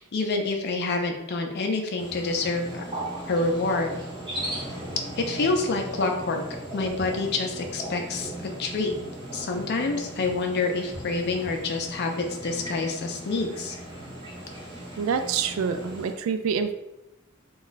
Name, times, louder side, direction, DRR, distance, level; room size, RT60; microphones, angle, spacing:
voice 1, 0.0-2.8 3.3-4.0 5.2-6.4 6.7-8.3 8.6-8.9 9.3-12.1 12.4-13.8, left 3 dB, 55° left, 4 dB, 0.4 m, -27 dB
sound 1, 2.0-16.1, right 1 dB, 25° right, 0.7 m, -38 dB
voice 2, 15.0-16.7, right 6 dB, 75° right, 9 dB, 0.3 m, -26 dB
2.3 x 2.1 x 3.9 m, 0.89 s
head